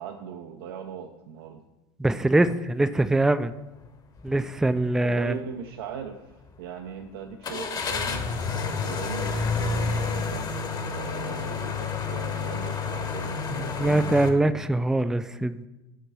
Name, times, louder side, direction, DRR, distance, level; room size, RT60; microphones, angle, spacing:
voice 1, 0.0-1.6 5.0-8.2 8.8-10.4 10.8-14.1, right 7 dB, 65° right, 5 dB, 0.6 m, -39 dB
voice 2, 2.0-3.5 4.2-5.4 13.4-15.7, right 2 dB, 5° right, 13 dB, 0.3 m, -23 dB
sound 1, 4.2-4.4 4.9-5.0 7.4-14.3, left 5 dB, 30° left, 1.0 m, -29 dB
5.7 x 5.2 x 6.1 m, 0.99 s
figure-of-eight pair, 75°, 13 cm